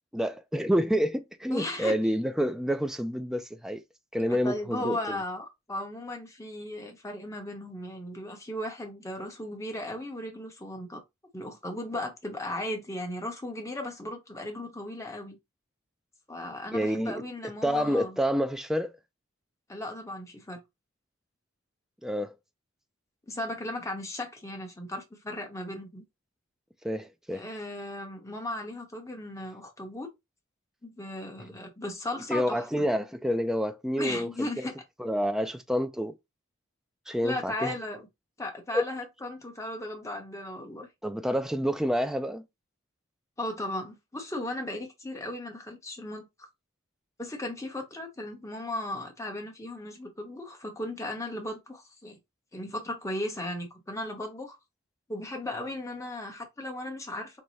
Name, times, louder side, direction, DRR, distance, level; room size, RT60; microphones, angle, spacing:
voice 1, 0.1-3.8 4.1-5.2 16.7-17.2 17.6-18.9 22.0-22.3 26.8-27.4 32.3-34.7 35.0-36.2 37.1-37.7 38.7-38.8 41.0-42.4, equal, ahead, 0.3 m, -28 dB
voice 2, 1.5-1.9 4.3-11.0 11.3-15.4 16.3-18.2 19.7-20.6 23.3-26.0 27.3-30.1 30.8-32.9 34.0-34.7 37.2-38.1 38.4-40.9 43.4-46.3 47.2-52.2 52.5-54.5 55.1-57.4, left 1 dB, 15° left, 1.0 m, -36 dB
4.7 x 2.1 x 4.0 m
head